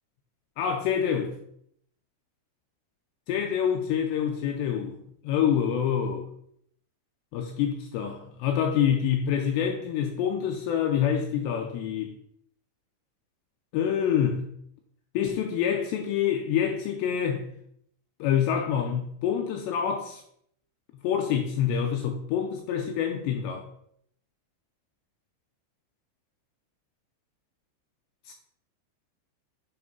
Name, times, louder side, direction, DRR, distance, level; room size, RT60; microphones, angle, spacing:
voice 1, 0.6-1.3 3.3-5.0 5.2-6.3 7.3-12.1 13.7-14.4 15.1-17.5 18.2-20.2 21.0-23.7 28.3-28.4, left 8 dB, 85° left, 2.5 m, -26 dB
8.6 x 3.7 x 5.2 m
omnidirectional pair, 5.6 m